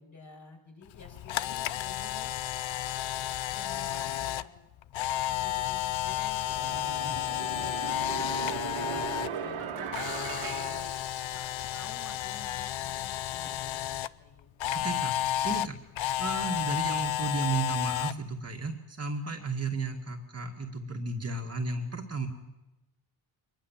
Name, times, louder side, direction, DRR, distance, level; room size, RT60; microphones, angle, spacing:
voice 1, 0.0-2.3 2.9-4.5 5.0-8.4 8.7-9.9 10.2-10.9 11.3-14.8, left 3 dB, 35° left, 1 dB, 5.7 m, -51 dB
Camera, 0.9-9.3 9.6-14.1 14.6-18.1, left 13 dB, 65° left, 0.7 m, -32 dB
sound 1, 5.7-5.8 6.5-11.7, right 7 dB, 85° right, 2.5 m, -38 dB
voice 2, 14.7-15.1 15.4-15.8 16.2-22.3, right 3 dB, 30° right, 3 dB, 2.1 m, -33 dB
23.5 x 20.5 x 7.5 m, 0.99 s
cardioid pair, 105°, 49 cm